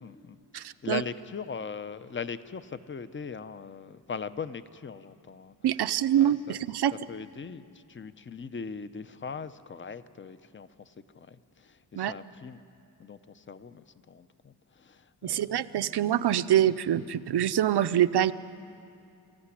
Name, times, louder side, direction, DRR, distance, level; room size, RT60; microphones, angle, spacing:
voice 1, 0.0-5.9 6.1-6.6 6.9-12.6 13.0-15.9, left 5 dB, 30° left, 13 dB, 0.7 m, -40 dB
voice 2, 0.5-1.0 5.6-6.9 12.0-12.1 15.2-18.3, right 11 dB, 75° right, 13 dB, 0.7 m, -25 dB
25.5 x 14.5 x 9.9 m, 2.7 s
wide cardioid pair, 115°, 40 cm